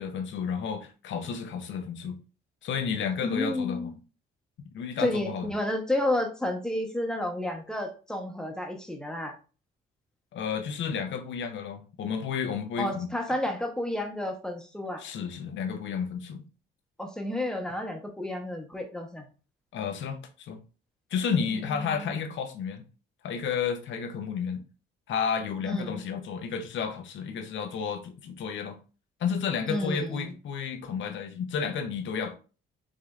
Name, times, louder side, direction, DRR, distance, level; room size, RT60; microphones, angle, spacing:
voice 1, 0.0-2.2 2.6-3.9 4.7-5.5 10.3-13.1 15.0-16.4 19.7-20.6 21.1-22.8 23.2-24.6 25.1-28.8 29.2-32.4, left 6 dB, 70° left, 0.7 m, -31 dB
voice 2, 3.2-4.0 5.0-9.3 12.8-15.0 17.0-19.3 21.3-22.1 25.6-26.0 29.7-30.4, left 1 dB, 5° left, 0.9 m, -31 dB
4.9 x 2.7 x 2.4 m
cardioid pair, 90°, 20 cm